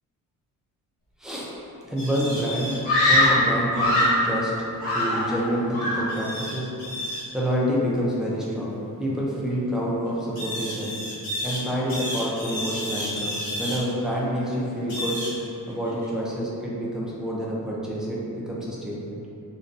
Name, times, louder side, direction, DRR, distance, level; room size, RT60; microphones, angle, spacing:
voice 1, 1.2-1.5 1.8-2.8 3.1-6.7 7.3-10.9 11.4-15.2 15.7-19.2, equal, ahead, -6 dB, 0.4 m, -28 dB
sound 1, 2.0-2.8 6.1-7.3 10.4-11.6 11.9-13.8 14.9-15.4 15.7-16.1, equal, 90° left, 1.3 m, -32 dB
Screaming, 2.8-4.3 4.8-5.5 5.7-6.2, left 1 dB, 45° left, 1.3 m, -21 dB
4.0 x 2.2 x 2.5 m, 2.8 s
wide cardioid pair, 160°, 33 cm